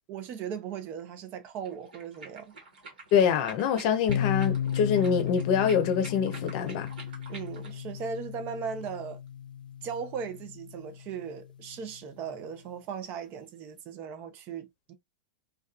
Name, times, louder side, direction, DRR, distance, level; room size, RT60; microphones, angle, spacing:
voice 1, 0.1-2.5 7.3-9.2 9.8-14.9, right 7 dB, 40° right, 0.5 m, -38 dB
sound 1, 1.6-7.8, right 3 dB, 80° right, 1.1 m, -48 dB
voice 2, 3.1-6.9, left 7 dB, 55° left, 0.6 m, -25 dB
sound 2, 4.1-11.8, left 9 dB, 90° left, 0.3 m, -35 dB
2.3 x 2.3 x 2.3 m
hypercardioid pair, 110°, 5 cm